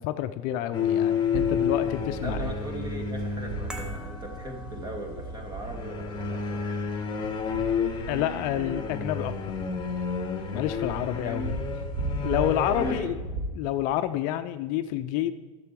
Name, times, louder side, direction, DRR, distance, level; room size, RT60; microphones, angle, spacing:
voice 1, 0.0-2.5 8.1-9.6 10.5-11.6 12.2-13.2 13.5-15.3, left 12 dB, 50° left, 10 dB, 0.5 m, -29 dB
sound 1, 0.7-4.3 5.6-13.0, left 6 dB, 25° left, 1.6 m, -30 dB
sound 2, 1.2-13.4, right 3 dB, 50° right, 2.0 m, -37 dB
voice 2, 2.2-6.9 11.0-11.8 12.8-13.3, right 1 dB, 25° right, 2 dB, 2.1 m, -40 dB
sound 3, 3.7-10.1 10.4-10.5, left 1 dB, 5° right, 1.1 m, -49 dB
11.5 x 6.8 x 4.7 m, 1.3 s
supercardioid pair, 120°, 18 cm